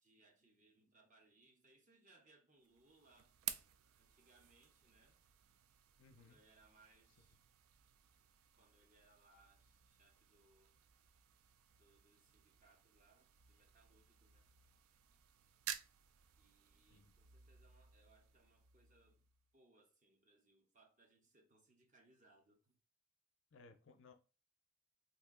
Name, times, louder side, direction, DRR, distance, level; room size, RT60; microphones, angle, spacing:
voice 1, 0.0-3.4 4.0-5.2 6.2-7.4 8.5-10.8 11.8-14.5 16.4-19.2 19.5-22.8, right 2 dB, 35° right, 0.8 m, -71 dB
sound 1, 2.6-19.5, right 10 dB, 80° right, 0.4 m, -54 dB
voice 2, 6.0-6.4 16.9-17.1 23.5-24.1, left 3 dB, 60° left, 0.5 m, -62 dB
2.8 x 2.7 x 3.6 m
head